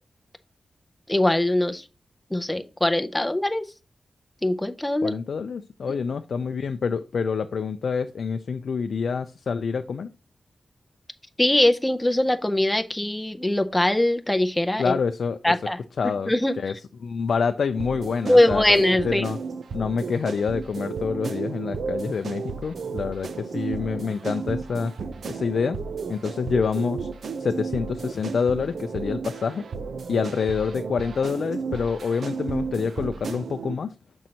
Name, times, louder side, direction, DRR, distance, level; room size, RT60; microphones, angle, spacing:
voice 1, 1.1-1.8 2.3-3.6 4.4-5.1 11.4-14.9 15.4-15.8 16.3-16.5 18.2-19.2, left 1 dB, 10° left, 7 dB, 0.5 m, -21 dB
voice 2, 5.0-10.1 14.8-15.4 16.0-19.4 19.7-24.9 25.3-25.8 26.1-27.1 27.4-29.7 30.1-33.9, left 5 dB, 90° left, 8 dB, 0.3 m, -27 dB
sound 1, 17.7-33.7, right 5 dB, 80° right, 0.5 m, -33 dB
7.5 x 5.2 x 2.8 m, 0.32 s
wide cardioid pair, 150°, 0 cm